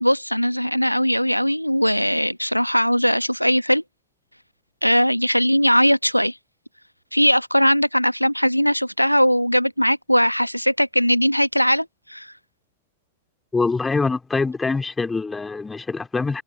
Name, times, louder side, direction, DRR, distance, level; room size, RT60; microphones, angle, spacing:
voice 1, 0.0-3.8 4.8-6.3 7.1-12.3, equal, 90° left, 1.0 m, -19 dB
voice 2, 13.5-16.4, left 4 dB, 10° left, 3.2 m, -24 dB
figure-of-eight pair, 90°, 0 cm